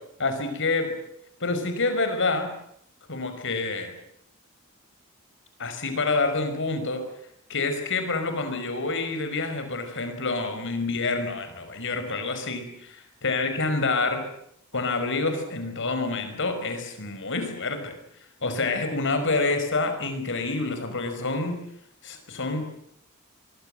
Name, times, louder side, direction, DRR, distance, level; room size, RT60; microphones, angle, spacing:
voice 1, 0.2-0.9 1.4-2.5 3.1-3.9 5.6-7.1 7.5-14.3 14.7-17.9 18.4-21.6 22.0-22.7, left 3 dB, 60° left, 8 dB, 5.7 m, -27 dB
25.0 x 23.5 x 8.0 m, 0.71 s
head